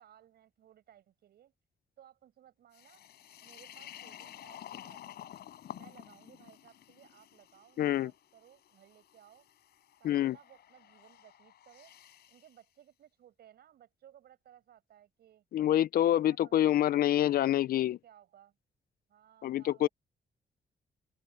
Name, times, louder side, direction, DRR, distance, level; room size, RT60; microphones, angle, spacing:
voice 1, 0.0-1.5 2.0-3.0 3.4-5.2 5.7-9.5 10.0-11.9 12.3-15.4 16.0-16.6 16.9-17.7 18.0-18.5 19.1-19.9, right 11 dB, 80° right, 7.5 m, -60 dB
sound 1, 2.7-12.5, left 11 dB, 90° left, 4.6 m, -51 dB
voice 2, 7.8-8.1 10.0-10.4 15.5-18.0 19.4-19.9, left 12 dB, 65° left, 0.4 m, -26 dB
cardioid pair, 130°, 16 cm